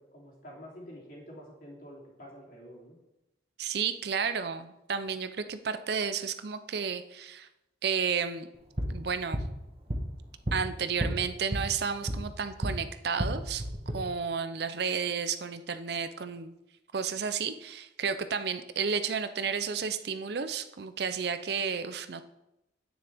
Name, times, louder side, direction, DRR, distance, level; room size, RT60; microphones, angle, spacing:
voice 1, 0.0-3.0, equal, 50° left, -3 dB, 3.2 m, -48 dB
voice 2, 3.6-7.5 7.8-8.5 8.9-9.4 10.5-13.6 13.9-16.5 16.9-22.2, right 6 dB, 55° right, 11 dB, 0.5 m, -32 dB
sound 1, 8.5-12.8 13.1-13.9, equal, 35° right, 1.3 m, -33 dB
9.5 x 9.4 x 3.5 m, 0.92 s
head